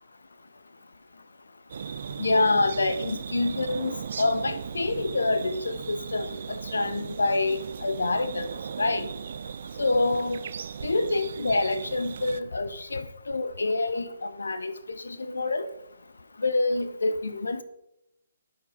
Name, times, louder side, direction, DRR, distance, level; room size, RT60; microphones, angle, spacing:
sound 1, 1.7-12.4, right 7 dB, 55° right, 0.4 m, -37 dB
voice 1, 2.2-8.5 8.8-9.1 9.8-10.5 10.8-14.7 15.0-15.7 16.4-17.6, left 2 dB, 85° left, 11 dB, 0.8 m, -27 dB
11.0 x 5.1 x 5.0 m, 0.84 s
hypercardioid pair, 150°, 0 cm